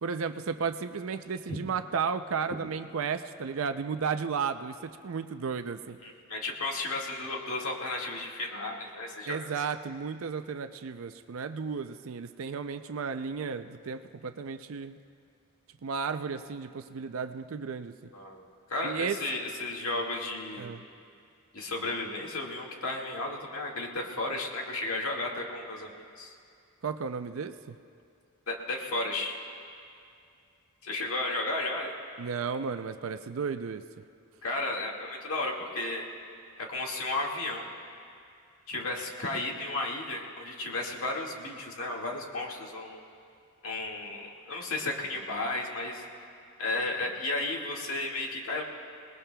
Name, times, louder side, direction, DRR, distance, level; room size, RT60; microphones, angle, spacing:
voice 1, 0.0-6.0 9.3-15.0 15.8-17.9 18.8-19.2 20.6-20.8 26.8-27.8 32.2-33.8, right 6 dB, 70° right, 9 dB, 0.5 m, -33 dB
voice 2, 6.0-9.6 18.1-18.4 18.7-20.7 21.5-26.4 28.5-29.4 30.8-31.9 34.4-36.1 36.6-37.7 38.7-43.0 43.6-46.0 46.6-48.6, left 2 dB, 75° left, -1 dB, 2.0 m, -33 dB
27.5 x 19.5 x 2.3 m, 2.4 s
head